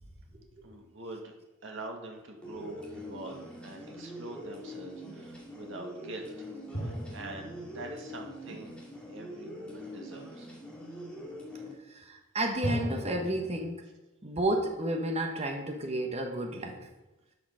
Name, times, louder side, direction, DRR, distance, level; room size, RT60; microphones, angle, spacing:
voice 1, 0.6-1.3 1.6-8.8 9.1-10.5, right 2 dB, 60° right, 1 dB, 1.9 m, -44 dB
sound 1, 2.4-11.7, equal, 5° left, 2.2 m, -44 dB
sound 2, 2.5-3.9 6.7-9.3 12.6-13.6, equal, 35° left, 2.4 m, -39 dB
voice 2, 11.9-13.8 14.2-16.8, right 1 dB, 30° right, 3 dB, 1.2 m, -31 dB
10.5 x 5.8 x 5.6 m, 1.0 s
head